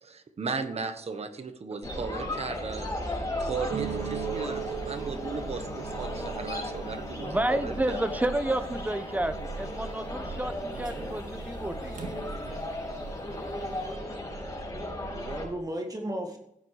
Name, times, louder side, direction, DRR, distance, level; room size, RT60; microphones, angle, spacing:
voice 1, 0.0-8.1, right 4 dB, 50° right, 9 dB, 1.3 m, -36 dB
sound 1, 1.8-15.5, left 1 dB, 25° left, 6.7 m, -35 dB
sound 2, 3.7-13.0 13.2-13.8, right 8 dB, 80° right, 2.0 m, -40 dB
voice 2, 7.2-12.0, right 1 dB, 10° right, 10 dB, 1.0 m, -30 dB
voice 3, 15.1-16.4, right 1 dB, 25° right, 2 dB, 2.0 m, -36 dB
16.0 x 9.4 x 4.9 m, 0.80 s
wide cardioid pair, 145°, 13 cm